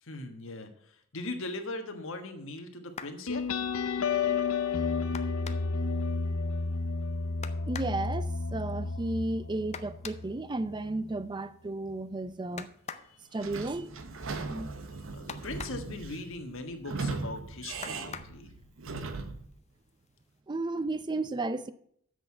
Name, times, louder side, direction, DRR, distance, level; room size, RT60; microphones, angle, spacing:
voice 1, 0.0-3.5 13.0-13.5 15.1-18.5, left 2 dB, 70° left, 1.4 m, -40 dB
sound 1, 2.9-3.3 5.1-5.8 7.4-8.0 9.7-10.3 12.6-13.1 15.3-15.9 17.8-18.4 19.5-19.6 20.1-20.3, left 6 dB, 35° left, 0.6 m, -43 dB
sound 2, 3.3-10.4, left 4 dB, 85° left, 0.7 m, -31 dB
voice 2, 7.7-12.7 13.3-14.0 14.5-14.7 20.5-21.7, right 2 dB, 20° right, 0.5 m, -33 dB
Sliding door / Squeak, 13.4-19.5, right 3 dB, 70° right, 1.0 m, -38 dB
7.8 x 6.3 x 7.4 m
head